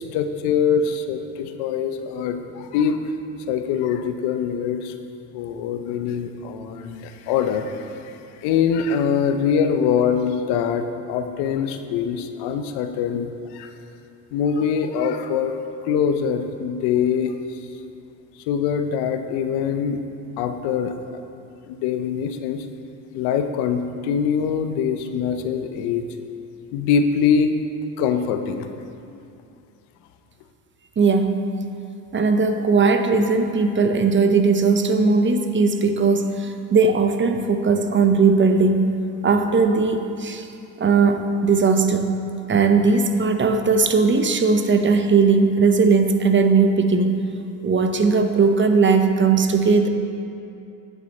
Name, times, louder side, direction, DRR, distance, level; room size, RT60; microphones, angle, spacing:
voice 1, 0.0-3.0 3.5-4.9 5.3-13.7 14.3-15.6 15.8-17.3 18.5-20.0 20.4-21.2 21.6-22.7 23.1-26.1 26.7-27.5 28.0-28.7, left 7 dB, 80° left, 7 dB, 0.7 m, -23 dB
voice 2, 31.0-31.5 32.1-40.5 40.8-42.1 42.5-47.2 47.6-49.9, right 4 dB, 30° right, 7 dB, 0.7 m, -18 dB
9.0 x 8.0 x 4.1 m, 2.6 s
supercardioid pair, 75°, 39 cm